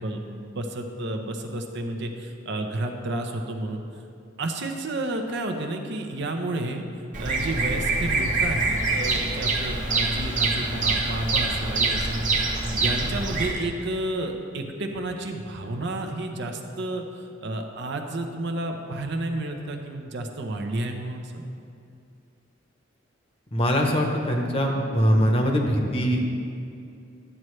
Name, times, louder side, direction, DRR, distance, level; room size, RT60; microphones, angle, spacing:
voice 1, 0.0-3.8 4.4-6.8 7.2-17.0 17.4-21.4, right 2 dB, 60° right, 4 dB, 0.7 m, -31 dB
Bird vocalization bird call bird song, 7.1-13.5, right 3 dB, 40° right, 1.0 m, -25 dB
voice 2, 23.5-26.2, equal, 30° left, 1 dB, 0.9 m, -22 dB
11.0 x 7.5 x 3.2 m, 2.5 s
head